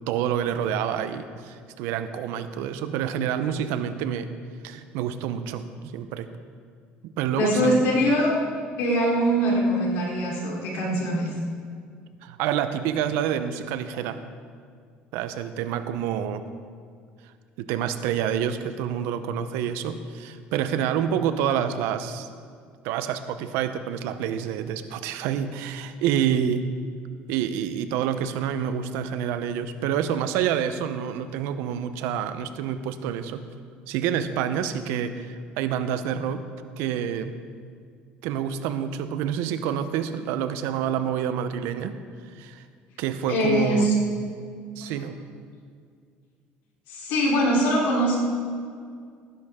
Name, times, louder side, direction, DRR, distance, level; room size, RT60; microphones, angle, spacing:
voice 1, 0.1-4.3 4.6-6.3 7.0-7.8 12.2-14.2 15.1-16.4 17.6-22.3 22.8-26.6 27.3-33.4 33.9-36.4 36.8-37.4 38.2-42.0 42.3-42.6 43.0-43.9 44.8-45.2, right 9 dB, 85° right, 10 dB, 0.8 m, -28 dB
voice 2, 7.4-8.3 8.8-11.3 43.3-43.9 44.8-44.9 46.9-48.2, equal, 80° left, -3 dB, 3.6 m, -22 dB
16.5 x 10.5 x 3.7 m, 2.1 s
cardioid pair, 105°, 4 cm